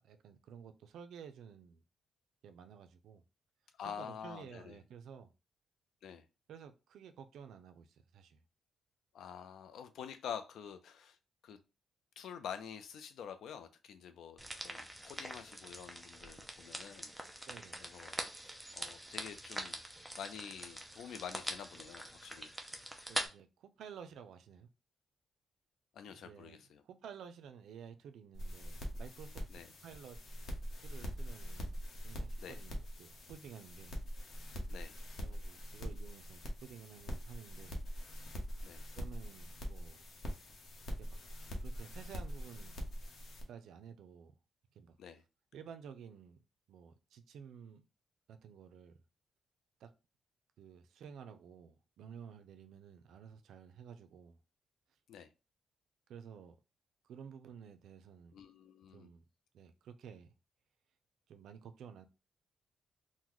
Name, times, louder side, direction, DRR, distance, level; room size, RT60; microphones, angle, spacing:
voice 1, 0.0-1.8 2.4-3.2 3.8-5.3 6.5-8.4 17.5-17.9 23.1-24.7 26.1-26.6 26.8-29.4 29.8-30.2 30.8-31.8 32.0-34.0 35.2-37.7 38.9-40.0 41.0-41.2 41.6-42.9 43.5-44.3 44.7-45.0 45.5-46.4 46.7-47.8 48.3-49.0 49.8-49.9 50.6-54.4 56.1-56.6 57.0-58.4 58.9-59.2 59.5-60.3 61.3-62.1, right 7 dB, 80° right, 0.4 m, -52 dB
voice 2, 3.8-4.8 6.0-6.2 9.1-11.2 11.4-11.6 12.2-17.1 17.8-19.8 20.2-22.5 25.9-26.8 29.5-29.7 32.4-32.6 34.7-34.9 38.6-38.8 45.0-45.2 55.1-55.3 58.3-59.1, left 8 dB, 75° left, 0.4 m, -48 dB
sound 1, 14.4-23.3, right 1 dB, 5° right, 0.4 m, -44 dB
sound 2, 28.3-43.4, equal, 55° left, 0.8 m, -43 dB
3.8 x 2.1 x 3.0 m
cardioid pair, 160°, 0 cm